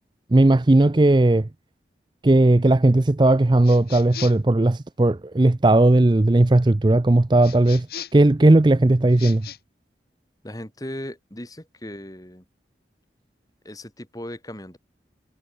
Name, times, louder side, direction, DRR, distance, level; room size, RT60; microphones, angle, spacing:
voice 1, 0.3-1.5 2.2-7.9 8.1-9.5, right 2 dB, 25° right, 0.5 m, -17 dB
sound 1, 3.6-4.5 7.4-8.3 9.1-9.6, left 10 dB, 55° left, 6.3 m, -38 dB
voice 2, 10.4-12.4 13.6-14.8, left 1 dB, 20° left, 3.3 m, -37 dB
head